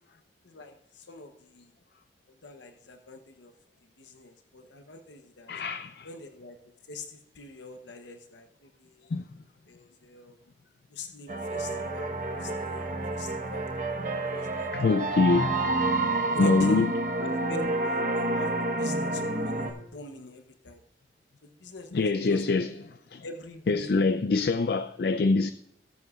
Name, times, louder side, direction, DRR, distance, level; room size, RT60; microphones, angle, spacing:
voice 1, 0.4-1.7 2.3-3.5 3.8-5.5 6.0-9.1 9.7-10.4 10.9-13.8 14.2-15.5 16.2-20.8 21.4-22.6 23.2-24.0, left 2 dB, 90° left, 0.8 m, -44 dB
voice 2, 5.5-6.1 9.1-9.2 14.7-15.6 16.4-16.9 21.9-22.7 23.1-23.2 23.7-25.5, left 3 dB, 55° left, 0.4 m, -24 dB
sound 1, 11.3-19.7, right 2 dB, 45° right, 1.1 m, -29 dB
18.0 x 8.0 x 2.4 m
head